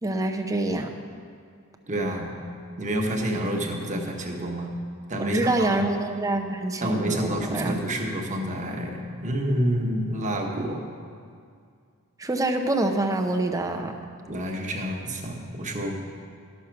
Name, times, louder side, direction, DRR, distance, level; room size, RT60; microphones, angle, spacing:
voice 1, 0.0-1.0 5.2-7.8 12.2-13.9, right 2 dB, 15° right, 4 dB, 0.6 m, -26 dB
voice 2, 1.9-2.4 2.8-4.7 5.1-5.8 6.8-10.8 14.3-16.0, right 1 dB, 35° right, 1 dB, 1.2 m, -28 dB
12.0 x 6.4 x 5.9 m, 2.2 s
head